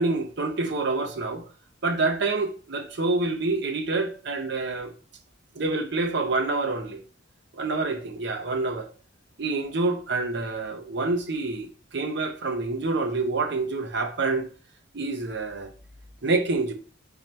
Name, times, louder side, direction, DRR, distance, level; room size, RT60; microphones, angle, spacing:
voice 1, 0.0-1.4 1.8-4.9 5.5-7.0 7.5-8.9 9.4-14.5 14.9-15.7 16.2-16.7, right 3 dB, 60° right, 0.7 m, -27 dB
4.3 x 3.8 x 3.1 m
head